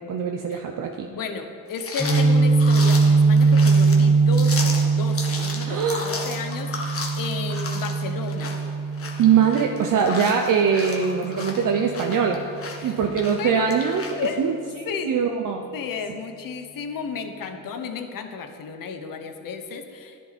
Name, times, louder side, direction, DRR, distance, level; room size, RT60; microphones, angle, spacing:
voice 1, 0.0-1.1 5.7-6.1 9.2-12.4 12.8-14.1 14.4-14.6 15.1-15.7, right 6 dB, 65° right, 3 dB, 0.8 m, -22 dB
voice 2, 1.1-8.6 12.8-13.0 13.4-13.7 14.2-14.4 14.8-15.1 15.7-20.2, left 5 dB, 70° left, 6 dB, 1.2 m, -33 dB
sound 1, 1.7-14.3, left 3 dB, 40° left, 1.7 m, -34 dB
Guitar, 2.0-9.8, right 4 dB, 15° left, 2.1 m, -20 dB
11.0 x 10.0 x 4.3 m, 2.3 s
cardioid pair, 80°, 35 cm